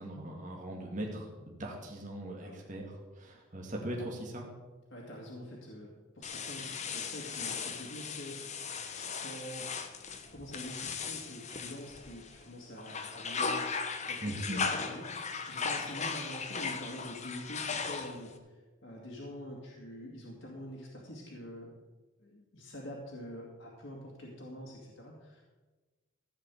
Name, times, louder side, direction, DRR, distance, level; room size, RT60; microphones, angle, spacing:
voice 1, 0.0-4.5 14.2-14.6, right 1 dB, 35° right, -1 dB, 2.1 m, -40 dB
voice 2, 2.4-2.7 4.9-8.6 9.2-9.6 10.3-13.7 14.1-21.7 22.2-25.4, equal, 60° left, -2 dB, 2.3 m, -46 dB
sound 1, 6.2-12.4 12.8-18.4, left 5 dB, 35° left, 1.0 m, -37 dB
15.5 x 5.2 x 8.4 m, 1.2 s
head